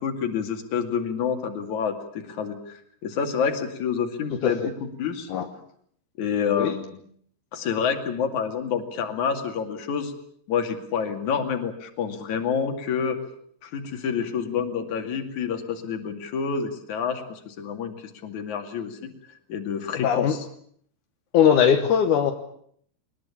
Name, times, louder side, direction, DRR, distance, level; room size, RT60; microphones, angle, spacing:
voice 1, 0.0-4.7 5.0-5.3 6.2-6.9 7.5-10.1 10.5-13.2 13.6-19.1 19.5-20.4, left 6 dB, 45° left, 5 dB, 3.2 m, -28 dB
voice 2, 19.9-20.3 21.3-22.3, left 8 dB, 70° left, 6 dB, 1.8 m, -20 dB
23.0 x 20.5 x 8.6 m, 0.65 s
omnidirectional pair, 5.4 m